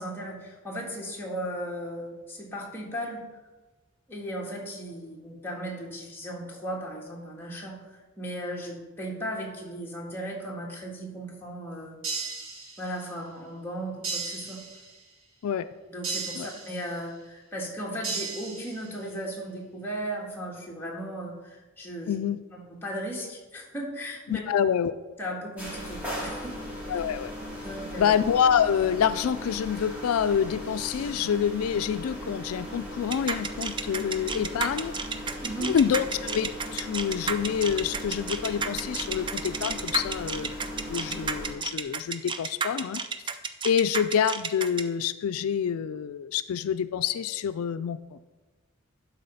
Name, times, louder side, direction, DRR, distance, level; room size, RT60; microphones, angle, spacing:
voice 1, 0.0-3.2 4.1-12.0 12.8-14.6 15.9-22.2 22.5-24.4 25.2-26.6 27.6-28.1 35.4-35.7, equal, 10° left, -3 dB, 1.6 m, -36 dB
sound 1, 12.0-13.1 14.0-15.1 16.0-17.1 18.0-19.1, right 4 dB, 70° right, 1.8 m, -36 dB
voice 2, 22.1-22.4 24.3-24.9 26.9-27.3 28.0-34.9 35.6-40.5 40.9-43.0 43.6-48.2, left 8 dB, 90° left, 12 dB, 0.3 m, -27 dB
sound 2, 25.6-41.5, equal, 5° right, 2.1 m, -38 dB
sound 3, 33.1-44.8, right 5 dB, 20° right, 0.4 m, -31 dB
11.5 x 4.0 x 5.5 m, 1.2 s
head